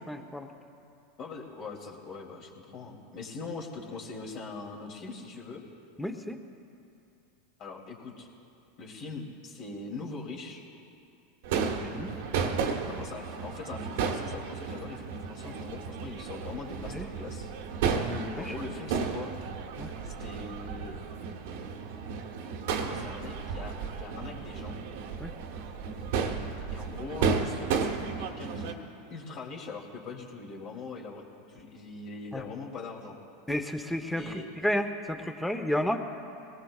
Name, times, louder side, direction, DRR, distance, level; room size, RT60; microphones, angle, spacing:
voice 1, 0.1-0.5 6.0-6.4 11.7-12.1 16.9-17.1 18.0-18.5 19.8-19.9 25.2-25.3 32.3-32.4 33.5-34.3 34.6-36.0, left 1 dB, 5° left, 7 dB, 1.1 m, -32 dB
voice 2, 1.2-5.6 7.6-8.3 8.8-10.6 12.9-17.5 18.4-19.3 20.0-21.0 22.7-24.8 26.7-28.7 29.1-33.2 34.2-34.5, left 4 dB, 45° left, 0 dB, 2.9 m, -41 dB
Crowd / Fireworks, 11.4-28.7, right 6 dB, 70° right, 1.3 m, -33 dB
23.0 x 18.5 x 2.5 m, 2.6 s
hypercardioid pair, 95°, 0 cm